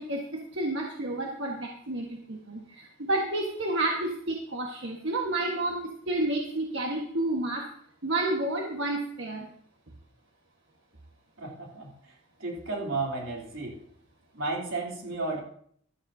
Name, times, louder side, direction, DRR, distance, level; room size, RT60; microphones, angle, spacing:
voice 1, 0.0-7.7 8.0-9.5, right 2 dB, 65° right, 1.5 m, -30 dB
voice 2, 11.4-11.9 12.4-13.8 14.3-15.4, right 3 dB, 80° right, 3.3 m, -33 dB
14.0 x 13.0 x 2.8 m
head